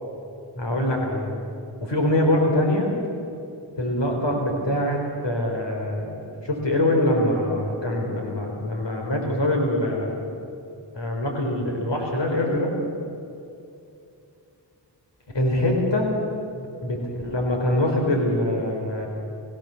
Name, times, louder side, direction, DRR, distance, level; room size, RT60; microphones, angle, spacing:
voice 1, 0.6-1.3 1.8-2.9 3.8-10.2 10.9-12.7 15.3-16.1 16.8-19.1, left 1 dB, 75° left, 1 dB, 4.1 m, -24 dB
24.5 x 15.5 x 7.0 m, 2.6 s
cardioid pair, 55°, 44 cm